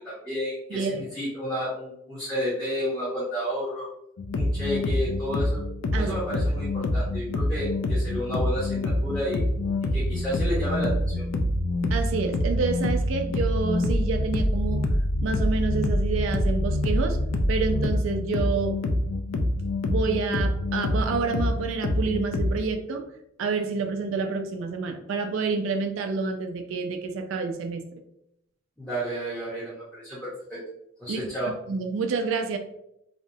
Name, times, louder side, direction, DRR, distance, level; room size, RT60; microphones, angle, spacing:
voice 1, 0.0-3.9 4.3-5.6 5.9-9.4 9.9-11.3 28.8-30.6 31.0-31.5, equal, 10° left, -9 dB, 0.6 m, -31 dB
voice 2, 0.7-1.1 5.9-6.1 11.9-14.8 15.2-17.2 17.5-18.8 19.8-23.0 23.4-27.8 31.1-31.3 31.7-32.6, right 4 dB, 75° right, 6 dB, 0.3 m, -28 dB
sound 1, 4.2-22.5, left 1 dB, 85° left, 0.3 m, -26 dB
2.7 x 2.1 x 2.6 m, 0.78 s
head